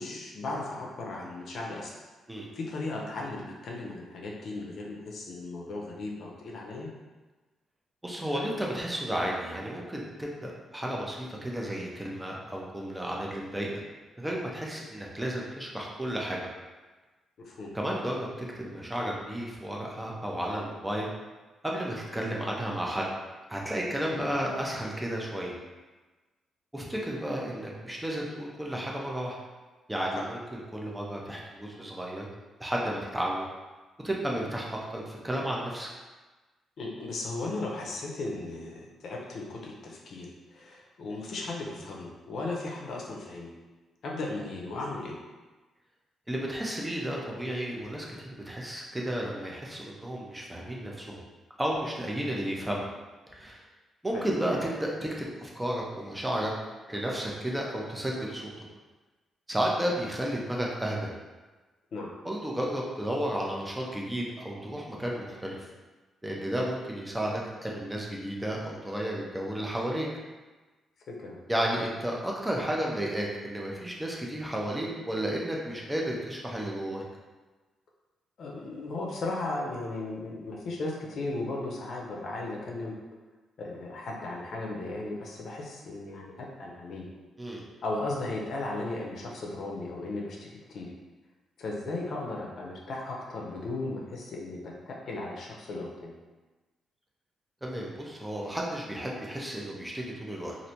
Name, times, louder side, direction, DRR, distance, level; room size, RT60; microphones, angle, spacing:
voice 1, 0.0-2.0 2.5-6.9 17.4-17.8 24.1-24.3 36.8-43.5 44.0-45.2 54.1-54.3 61.9-62.1 71.1-71.4 78.4-82.9 83.6-87.1 87.8-90.9 91.6-96.1, left 2 dB, 60° left, -2 dB, 0.6 m, -36 dB
voice 2, 8.0-13.8 14.2-16.5 17.7-21.1 21.6-23.1 23.5-25.5 26.7-29.4 29.9-32.3 32.6-33.5 34.0-35.9 46.3-51.2 51.6-52.9 53.3-53.6 54.0-56.5 56.9-58.6 59.5-61.1 62.2-65.6 66.2-70.1 71.5-77.0 87.4-87.6 97.6-100.6, right 1 dB, 10° right, -2 dB, 0.5 m, -32 dB
3.2 x 2.5 x 2.8 m, 1.2 s
cardioid pair, 135°, 0 cm